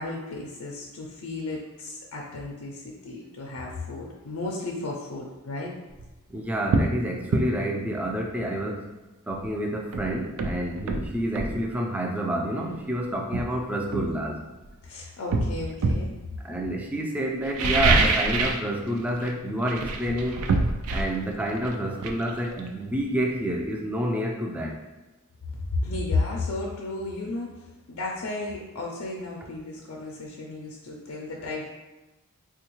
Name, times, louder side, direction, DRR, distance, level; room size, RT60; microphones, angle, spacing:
voice 1, 0.0-5.7 14.8-16.1 25.5-31.7, left 2 dB, 90° left, -2 dB, 0.5 m, -33 dB
sound 1, 5.9-6.1 6.7-7.0 7.3-7.5 9.4-9.5 9.9-11.6 12.7-12.8 13.3-14.7 15.3-16.1 17.4-18.7 18.9-19.3 19.6-23.2 23.5-23.6, right 3 dB, 80° right, 0.4 m, -26 dB
voice 2, 6.3-8.9 9.3-14.4 16.4-20.5 20.9-24.8, right 1 dB, 5° right, 0 dB, 0.3 m, -28 dB
3.5 x 2.3 x 3.0 m, 1.1 s
head